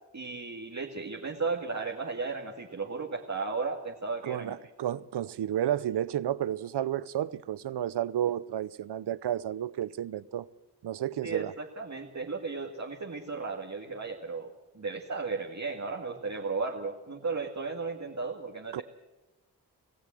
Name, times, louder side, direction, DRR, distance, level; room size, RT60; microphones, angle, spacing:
voice 1, 0.1-4.6 11.2-18.8, right 4 dB, 40° right, 2.2 m, -35 dB
voice 2, 4.2-10.5 10.8-11.5 18.7-18.8, right 11 dB, 75° right, 0.7 m, -31 dB
25.5 x 16.0 x 7.7 m
cardioid pair, 45°, 41 cm